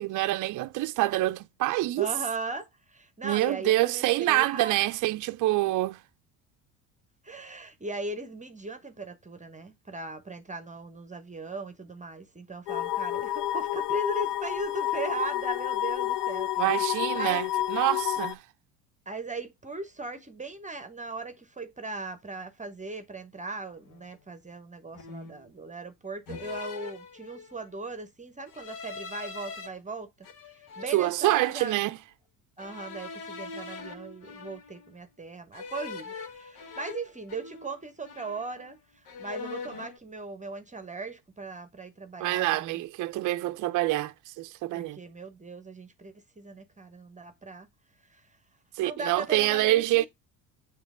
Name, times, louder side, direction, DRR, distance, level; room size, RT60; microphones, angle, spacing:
voice 1, 0.0-2.1 3.2-6.0 16.6-18.4 30.9-32.0 42.2-45.0 48.8-50.1, right 17 dB, 40° right, 0.5 m, -26 dB
voice 2, 2.0-4.9 7.2-16.5 17.1-17.4 19.1-30.1 30.5-31.8 32.6-38.8 39.2-42.8 44.7-47.7 48.1-48.2 48.8-50.1, right 3 dB, 15° right, 0.8 m, -38 dB
sound 1, 12.7-18.3, left 14 dB, 60° left, 0.7 m, -29 dB
sound 2, 23.9-24.1 24.9-25.5 26.3-27.7 28.5-29.7 30.2-31.8 32.6-34.9 35.5-37.8 38.0-38.8 39.1-40.0, left 4 dB, 75° left, 1.3 m, -42 dB
7.1 x 3.0 x 4.8 m
hypercardioid pair, 70°, 48 cm